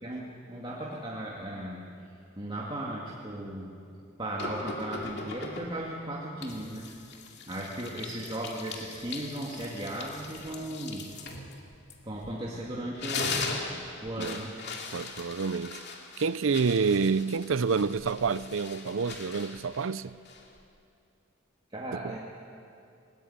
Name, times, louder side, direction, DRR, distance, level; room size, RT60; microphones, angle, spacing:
voice 1, 0.0-1.9 2.4-3.8 4.2-6.9 7.5-11.1 12.0-13.3 14.0-14.6 21.7-22.2, right 1 dB, 25° right, 2.2 m, -36 dB
sound 1, 4.4-5.9 6.4-12.5 12.8-20.6, left 4 dB, 55° left, 2.4 m, -39 dB
voice 2, 14.9-15.8 16.2-20.1 21.9-22.1, right 5 dB, 70° right, 0.5 m, -28 dB
20.5 x 20.0 x 8.8 m
head